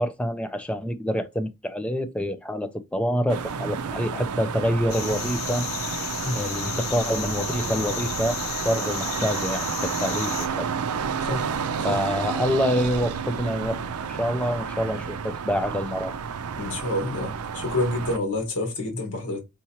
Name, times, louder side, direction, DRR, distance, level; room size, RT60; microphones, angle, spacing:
voice 1, 0.0-5.7 6.3-8.4 8.6-10.7 11.8-13.8 14.1-16.1, equal, 5° left, 0.4 m, -26 dB
sound 1, 3.3-18.2, right 6 dB, 85° right, 0.5 m, -31 dB
sound 2, 4.9-10.5, left 8 dB, 70° left, 0.8 m, -33 dB
voice 2, 16.6-19.4, left 1 dB, 90° left, 1.6 m, -28 dB
4.3 x 3.7 x 2.8 m
head